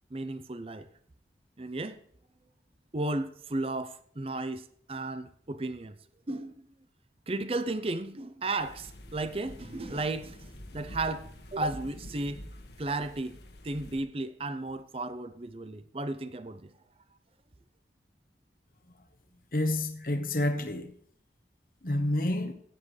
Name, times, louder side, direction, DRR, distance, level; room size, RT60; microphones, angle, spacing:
voice 1, 0.1-0.9 1.6-2.0 2.9-6.0 6.3-6.7 7.3-12.4 12.8-13.4 13.6-16.7, right 2 dB, 30° right, 0.6 m, -34 dB
sound 1, 8.6-14.0, equal, 75° left, 1.6 m, -47 dB
voice 2, 19.5-20.9 21.8-22.5, left 1 dB, 55° left, 1.1 m, -29 dB
16.0 x 9.6 x 3.2 m
head